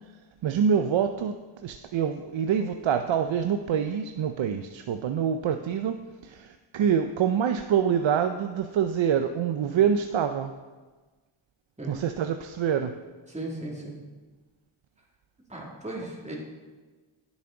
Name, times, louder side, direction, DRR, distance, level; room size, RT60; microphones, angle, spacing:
voice 1, 0.4-1.3 1.6-10.5 11.9-13.0, right 8 dB, 65° right, 7 dB, 0.6 m, -26 dB
voice 2, 13.3-14.0 15.5-16.4, right 1 dB, 15° right, -3 dB, 2.5 m, -36 dB
10.5 x 7.4 x 3.8 m, 1.3 s
cardioid pair, 55°, 50 cm